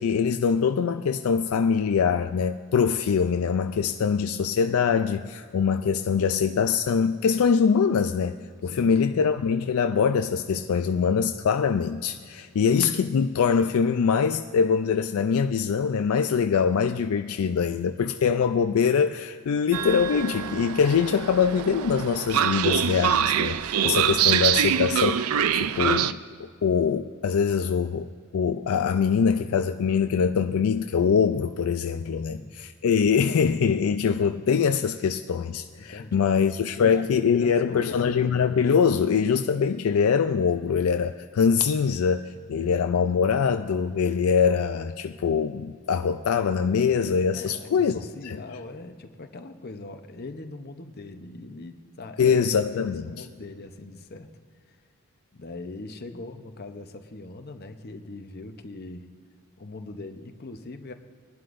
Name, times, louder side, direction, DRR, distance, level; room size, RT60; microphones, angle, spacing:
voice 1, 0.0-8.4 8.6-26.2 26.6-28.1 28.3-47.9 48.3-48.4 52.2-53.1, left 6 dB, 70° left, 7 dB, 0.4 m, -23 dB
voice 2, 8.7-9.2 32.1-32.5 35.8-38.2 42.5-42.8 47.3-54.3 54.7-54.8 55.3-59.1 59.6-60.9, left 2 dB, 45° left, 7 dB, 0.7 m, -41 dB
Train, 19.7-26.1, right 9 dB, 70° right, 0.4 m, -25 dB
20.5 x 11.5 x 2.6 m, 2.1 s
head